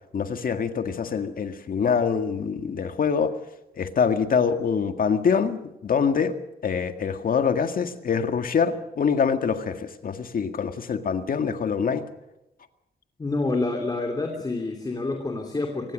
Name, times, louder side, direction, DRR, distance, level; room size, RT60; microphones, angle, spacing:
voice 1, 0.1-3.3 3.8-6.3 6.6-12.0, left 6 dB, 55° left, 8 dB, 1.9 m, -25 dB
voice 2, 13.2-15.9, left 2 dB, 20° left, 2 dB, 2.8 m, -28 dB
24.5 x 19.5 x 6.5 m, 0.90 s
wide cardioid pair, 145°, 18 cm